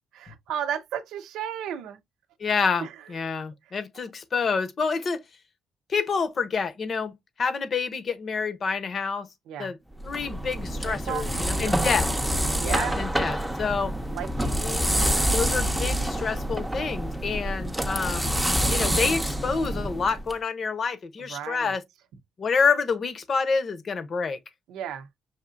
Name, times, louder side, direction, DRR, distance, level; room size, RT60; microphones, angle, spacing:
voice 1, 0.1-2.0 2.8-2.9 9.5-9.7 10.8-11.8 12.6-13.0 14.1-14.8 21.3-21.8 24.7-25.1, right 9 dB, 85° right, 0.6 m, -34 dB
voice 2, 2.4-5.2 5.9-7.1 7.4-9.3 9.6-9.8 10.0-12.1 12.6-13.9 14.6-14.9 15.3-18.4 18.7-21.8 22.4-24.4, left 5 dB, 45° left, 0.8 m, -28 dB
sound 1, 10.0-20.3, equal, 5° right, 0.6 m, -27 dB
5.8 x 2.7 x 2.5 m
cardioid pair, 90°, 0 cm